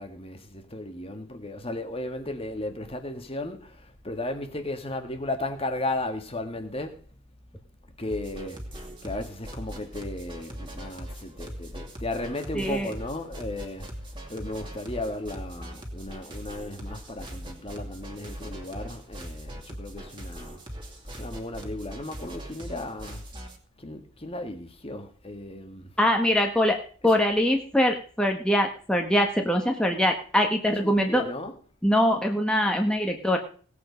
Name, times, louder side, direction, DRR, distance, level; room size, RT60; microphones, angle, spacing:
voice 1, 0.0-7.0 8.0-20.6 20.9-23.2 23.8-25.9 27.0-27.1 30.7-31.5, left 2 dB, 25° left, 1.7 m, -35 dB
sound 1, 8.1-23.6, equal, 25° right, 2.7 m, -40 dB
voice 2, 12.5-12.9 26.0-26.8 27.0-31.2 31.8-33.4, equal, 5° left, 1.5 m, -23 dB
18.5 x 8.4 x 5.2 m
head